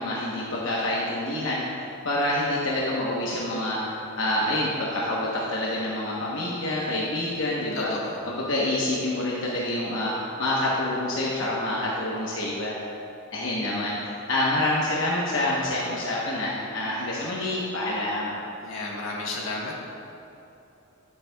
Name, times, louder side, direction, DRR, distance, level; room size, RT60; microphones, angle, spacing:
voice 1, 0.0-7.9 8.3-12.7 13.3-18.3, left 1 dB, 65° left, -5 dB, 1.0 m, -27 dB
voice 2, 7.7-8.2 18.6-19.8, left 2 dB, 90° left, -3 dB, 1.5 m, -33 dB
11.0 x 8.2 x 2.3 m, 2.9 s
head